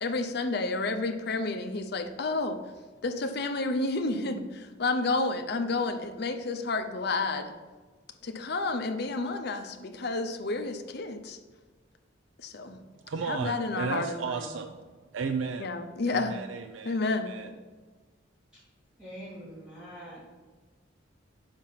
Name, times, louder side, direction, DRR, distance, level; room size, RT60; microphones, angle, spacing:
voice 1, 0.0-2.6 3.0-7.5 8.2-11.4 12.4-12.8 13.3-14.4 15.6-16.4 16.8-17.3, left 3 dB, 55° left, 6 dB, 0.6 m, -30 dB
voice 2, 12.7-15.8 16.1-17.5, right 5 dB, 75° right, 7 dB, 0.4 m, -35 dB
voice 3, 19.0-20.2, equal, 5° right, -11 dB, 2.1 m, -44 dB
5.8 x 5.2 x 5.7 m, 1.3 s
head